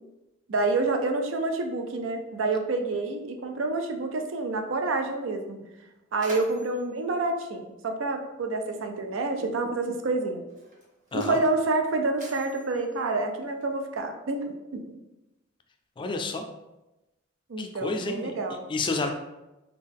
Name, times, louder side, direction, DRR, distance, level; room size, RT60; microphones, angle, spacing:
voice 1, 0.5-5.6 6.1-10.5 11.1-15.0 17.5-18.7, right 3 dB, 80° right, 5 dB, 0.5 m, -28 dB
Mechanisms, 5.7-8.4 9.4-9.6 10.4-14.0, right 1 dB, 40° right, 0.9 m, -48 dB
voice 2, 16.0-16.4 17.6-18.3 18.7-19.1, left 3 dB, 25° left, 4 dB, 0.3 m, -29 dB
3.6 x 2.3 x 3.5 m, 0.99 s
head